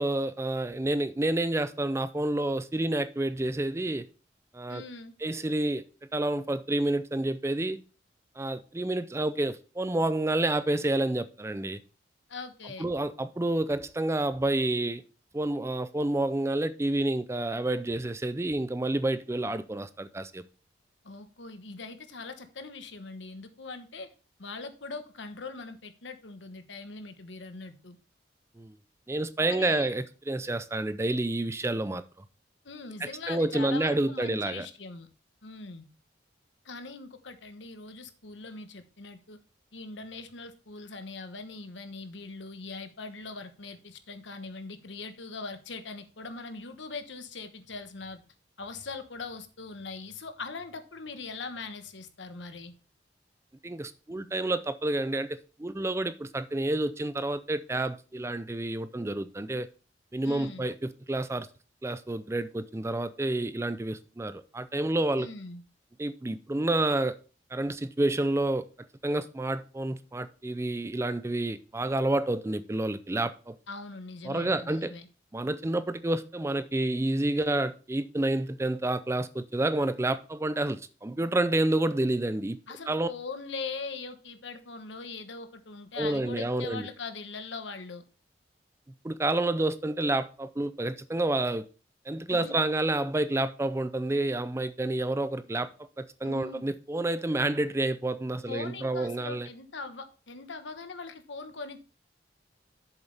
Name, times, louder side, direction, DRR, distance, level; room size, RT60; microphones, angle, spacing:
voice 1, 0.0-4.1 4.5-4.8 5.2-5.8 6.1-7.8 8.4-11.8 12.8-15.0 15.3-20.4 28.6-28.7 29.1-32.0 33.0-34.7 53.6-59.7 60.1-61.5 61.8-65.3 66.0-67.2 67.5-68.7 69.0-73.6 74.2-74.9 75.3-82.6 82.9-83.1 86.0-86.8 89.0-91.7 92.1-99.5, right 2 dB, 15° right, 0.4 m, -29 dB
voice 2, 4.7-5.1 12.3-12.9 21.0-24.1 24.4-28.0 29.5-29.9 32.6-35.1 35.4-35.9 36.6-39.4 39.7-48.2 48.6-52.7 60.2-60.7 65.2-65.6 73.7-75.1 82.7-88.0 92.3-92.6 96.2-96.6 98.5-101.8, left 4 dB, 85° left, 1.2 m, -41 dB
8.1 x 7.1 x 3.4 m
head